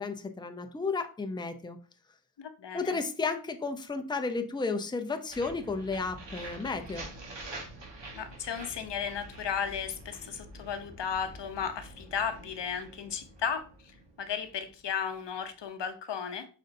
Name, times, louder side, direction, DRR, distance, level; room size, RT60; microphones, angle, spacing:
voice 1, 0.0-1.8 2.7-7.1, left 4 dB, 10° left, 7 dB, 0.5 m, -33 dB
voice 2, 2.4-3.0 8.1-13.7 14.2-16.5, left 7 dB, 80° left, 9 dB, 0.7 m, -34 dB
sound 1, 5.3-15.1, right 1 dB, 85° right, 1.3 m, -46 dB
5.2 x 4.0 x 2.6 m, 0.38 s
wide cardioid pair, 65°, 42 cm